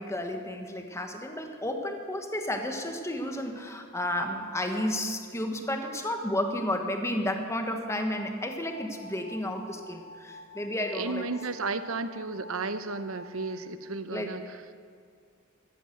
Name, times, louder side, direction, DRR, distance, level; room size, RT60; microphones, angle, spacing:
voice 1, 0.0-11.2 14.1-14.3, left 1 dB, 15° left, 4 dB, 1.3 m, -32 dB
sound 1, 7.6-13.4, left 3 dB, 35° right, 1.6 m, -49 dB
voice 2, 10.9-14.4, right 3 dB, 70° right, 11 dB, 0.9 m, -33 dB
14.5 x 10.5 x 7.9 m, 2.2 s
head